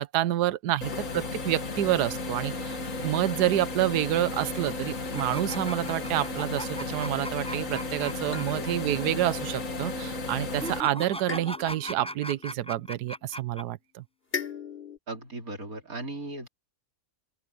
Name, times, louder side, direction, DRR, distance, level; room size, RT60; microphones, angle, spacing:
voice 1, 0.0-14.0, right 14 dB, 75° right, 1.3 m, -28 dB
sound 1, 0.8-10.8, left 3 dB, 50° left, 2.5 m, -34 dB
sound 2, 5.1-8.7 9.0-9.1 10.5-13.6, equal, 5° left, 5.8 m, -39 dB
sound 3, 11.3-13.4 14.3-15.0, left 6 dB, 35° left, 4.2 m, -40 dB
voice 2, 15.1-16.5, right 2 dB, 55° right, 4.3 m, -37 dB
open air
omnidirectional pair, 1.8 m